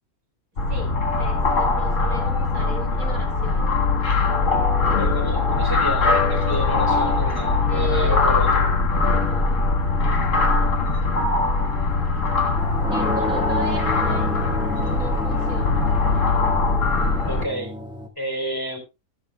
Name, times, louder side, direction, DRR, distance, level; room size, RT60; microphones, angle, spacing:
sound 1, 0.6-17.4, left 3 dB, 60° left, 1.9 m, -21 dB
voice 1, 0.7-3.8 7.7-8.7 12.9-14.3 14.7-15.8, right 3 dB, 75° right, 3 dB, 3.3 m, -36 dB
voice 2, 5.0-8.6 17.2-17.7 18.2-18.8, right 1 dB, 15° left, 3 dB, 3.2 m, -30 dB
sound 2, 12.6-18.1, left 1 dB, 5° right, 1.6 m, -30 dB
13.5 x 12.5 x 2.2 m, 0.27 s
omnidirectional pair, 1.5 m